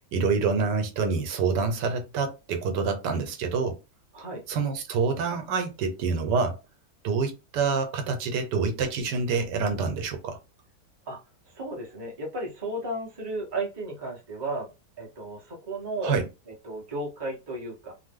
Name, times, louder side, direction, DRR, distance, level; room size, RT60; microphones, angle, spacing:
voice 1, 0.1-3.8 4.5-6.6 7.0-10.4 16.0-16.3, right 5 dB, 85° right, 1.4 m, -27 dB
voice 2, 11.5-14.7 15.0-16.2 16.5-17.9, right 2 dB, 20° right, 0.7 m, -34 dB
2.9 x 2.0 x 3.5 m
omnidirectional pair, 1.8 m